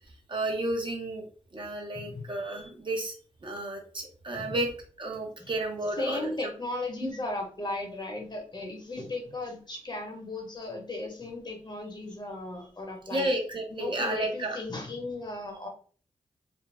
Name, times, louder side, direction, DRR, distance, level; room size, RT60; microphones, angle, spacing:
voice 1, 0.3-1.3 1.5-3.1 3.4-4.7 5.0-6.3 7.0-7.1 13.1-14.6, right 1 dB, 40° right, 1 dB, 0.8 m, -32 dB
voice 2, 6.0-13.3 13.7-15.7, left 2 dB, 35° left, 1 dB, 0.9 m, -36 dB
2.6 x 2.1 x 3.2 m, 0.42 s
cardioid pair, 70°, 12 cm